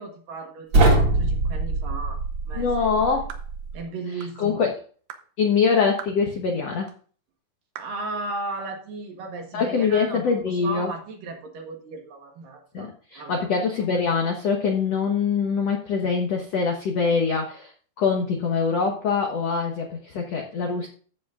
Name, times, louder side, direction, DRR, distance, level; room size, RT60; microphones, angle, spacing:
voice 1, 0.0-2.9 3.7-4.7 7.8-13.4, right 3 dB, 60° right, 3 dB, 2.8 m, -36 dB
sound 1, 0.7-3.8, right 2 dB, 40° right, 2.4 m, -23 dB
voice 2, 2.6-3.3 4.1-4.7 5.4-6.9 9.5-10.9 12.7-17.7 18.0-20.9, left 5 dB, 85° left, 2 dB, 1.4 m, -24 dB
sound 2, 3.3-3.5 4.2-4.4 5.1-5.3 6.0-6.2 6.9-7.0 7.8-8.0, right 9 dB, 75° right, 2.0 m, -40 dB
14.5 x 7.4 x 2.5 m, 0.41 s
omnidirectional pair, 4.9 m